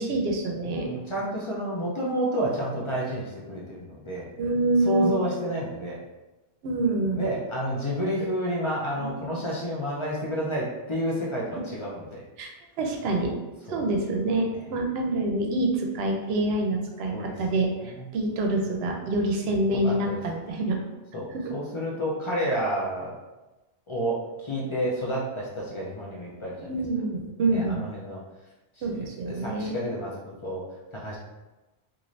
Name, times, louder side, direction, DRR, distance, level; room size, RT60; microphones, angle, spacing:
voice 1, 0.0-0.9 4.4-5.2 6.6-7.3 9.0-9.3 12.4-12.5 12.8-13.3 13.7-17.7 18.1-20.8 21.3-21.6 26.6-27.8 28.8-29.7, right 2 dB, 70° right, 2 dB, 0.8 m, -26 dB
voice 2, 0.8-4.3 4.8-6.0 7.1-12.2 13.7-13.8 17.1-17.3 17.9-18.1 19.7-19.9 21.1-23.1 23.9-26.7 27.5-28.2 28.9-29.0 29.2-30.6 30.9-31.2, equal, 40° left, -5 dB, 0.5 m, -30 dB
2.6 x 2.5 x 3.1 m, 1.1 s
omnidirectional pair, 1.1 m